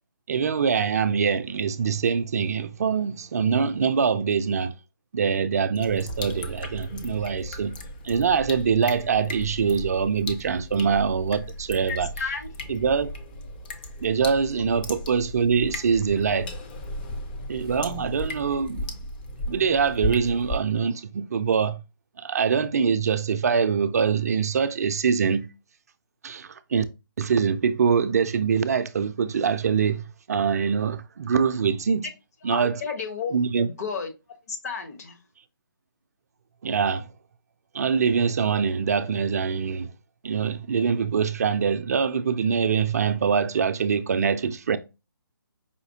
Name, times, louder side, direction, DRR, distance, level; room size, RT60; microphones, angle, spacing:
voice 1, 0.3-4.7 5.1-7.8 8.0-12.1 12.7-13.1 14.0-16.5 17.5-18.9 19.5-21.8 22.2-25.5 26.2-26.8 27.2-32.1 32.4-32.8 33.3-33.7 36.6-37.1 37.7-39.9 40.2-44.8, right 6 dB, 45° right, 0.3 m, -24 dB
sound 1, 5.7-20.6, left 1 dB, 25° left, 0.5 m, -36 dB
voice 2, 11.9-12.5 32.4-34.1 34.5-35.2, left 5 dB, 45° left, 1.0 m, -32 dB
5.0 x 2.7 x 2.7 m
figure-of-eight pair, 150°, 12 cm